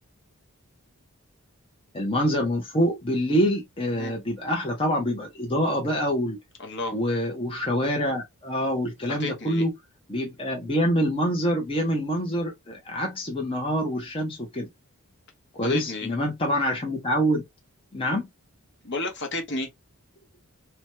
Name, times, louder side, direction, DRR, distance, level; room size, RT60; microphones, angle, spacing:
voice 1, 1.9-6.4 6.9-9.7 10.1-14.7 15.5-17.4 17.9-18.3, equal, 25° left, 0.7 m, -26 dB
voice 2, 6.6-7.0 9.2-9.6 15.6-16.1 18.8-19.7, left 2 dB, 55° left, 0.9 m, -31 dB
2.9 x 2.2 x 2.9 m
head